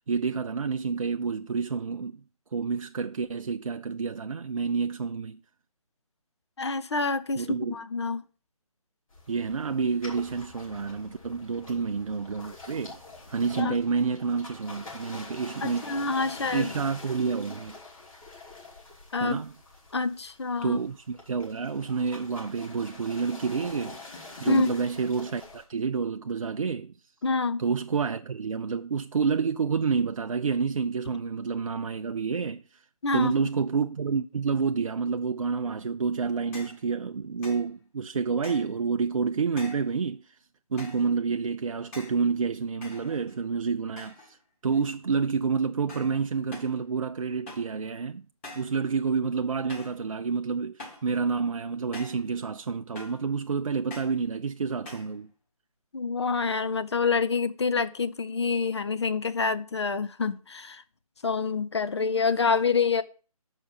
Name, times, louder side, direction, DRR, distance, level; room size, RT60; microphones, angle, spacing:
voice 1, 0.1-2.2 2.5-5.4 7.4-7.8 9.3-13.0 13.3-16.0 16.5-17.8 19.2-19.5 20.6-24.0 24.4-26.9 27.6-32.6 33.1-40.2 40.7-44.4 44.6-48.2 48.5-55.3, right 5 dB, 60° right, 0.4 m, -29 dB
voice 2, 6.6-7.5 7.7-8.2 13.6-13.7 15.6-16.7 19.1-19.4 19.9-20.8 24.5-24.7 27.2-27.6 33.0-33.3 55.9-60.8 61.2-63.0, left 4 dB, 45° left, 0.5 m, -27 dB
sound 1, 9.1-25.6, left 3 dB, 65° left, 3.3 m, -45 dB
sound 2, 36.5-36.8 37.4-37.7 38.4-38.8 39.6-39.9 40.8-41.1 41.9-42.2 42.8-43.5 44.0-44.3 44.7-45.1 45.9-46.2 46.5-46.8 47.5-47.8 48.4-48.8 49.7-50.0 50.8-51.1 51.9-52.3 52.9-53.3 53.9-54.2 54.8-55.1, left 2 dB, 20° left, 1.5 m, -45 dB
6.6 x 4.9 x 5.7 m
figure-of-eight pair, 150°, 19 cm